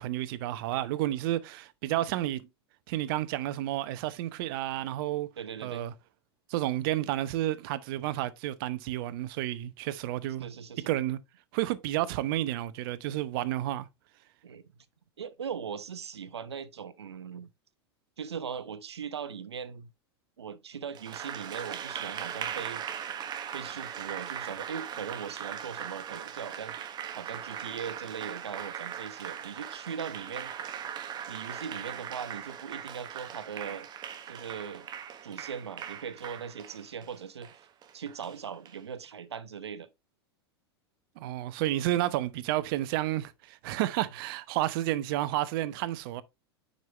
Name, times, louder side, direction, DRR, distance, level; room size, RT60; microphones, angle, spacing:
voice 1, 0.0-2.5 2.9-5.3 5.6-5.9 6.5-10.5 10.9-11.2 11.5-13.9 41.2-46.2, right 14 dB, 60° right, 0.9 m, -31 dB
voice 2, 5.4-5.9 10.4-10.9 14.4-14.6 15.2-17.5 18.2-19.9 20.4-22.8 23.5-26.8 27.1-30.5 31.3-33.9 34.3-34.9 35.2-37.5 37.9-39.9, right 7 dB, 85° right, 0.9 m, -39 dB
Applause, 20.9-38.8, right 9 dB, 30° right, 1.2 m, -40 dB
9.3 x 5.5 x 3.1 m
hypercardioid pair, 100°, 14 cm